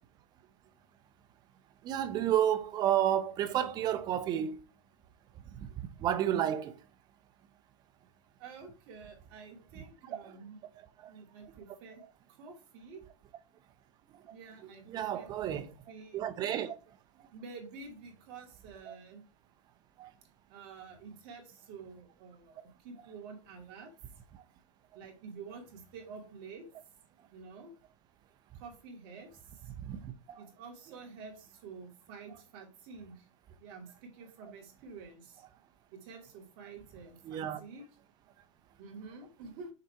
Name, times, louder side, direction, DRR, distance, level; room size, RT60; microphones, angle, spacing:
voice 1, 1.8-4.6 6.0-6.7 14.9-15.6 16.1-16.7 18.9-19.0 20.0-20.1 29.9-30.4 37.3-37.6, right 10 dB, 25° right, 0.8 m, -30 dB
voice 2, 8.4-10.6 11.1-12.0 12.4-13.0 14.3-16.2 17.3-19.2 20.5-23.9 24.9-26.7 27.3-27.7 28.5-29.3 29.6-29.7 30.4-33.2 33.6-35.4 36.0-37.9 38.8-39.7, right 4 dB, 40° right, 2.7 m, -49 dB
6.7 x 4.2 x 4.6 m
hypercardioid pair, 145°, 17 cm